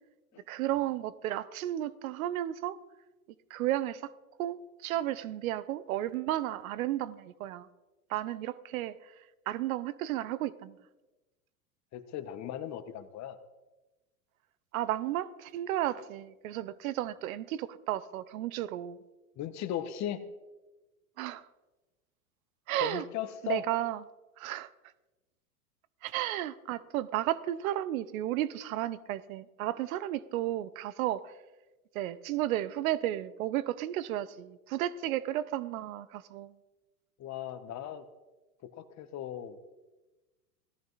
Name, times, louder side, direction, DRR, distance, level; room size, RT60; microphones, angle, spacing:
voice 1, 0.5-2.8 3.5-4.1 4.4-7.7 8.1-9.1 9.5-10.7 14.7-19.0 21.2-21.5 22.7-23.0 23.4-24.0 24.4-24.7 26.0-31.3 31.9-36.5, right 13 dB, 60° right, 0.9 m, -33 dB
voice 2, 11.9-13.4 19.4-20.2 22.8-23.6 37.2-38.0 38.6-39.6, left 11 dB, 35° left, 1.4 m, -37 dB
18.0 x 14.0 x 4.1 m
hypercardioid pair, 100°, 46 cm